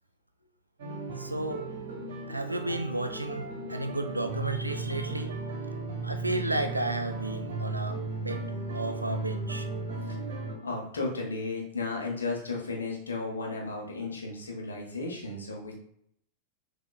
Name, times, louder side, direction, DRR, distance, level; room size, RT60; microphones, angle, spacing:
sound 1, 0.8-10.6, right 3 dB, 55° right, 1.1 m, -36 dB
voice 1, 1.2-1.6 2.3-5.3 6.0-8.4 8.7-9.7, right 2 dB, 85° right, 7 dB, 0.4 m, -32 dB
voice 2, 10.6-15.8, left 3 dB, 75° left, 0 dB, 1.1 m, -34 dB
6.0 x 2.8 x 2.2 m, 0.69 s
figure-of-eight pair, 90°, 0 cm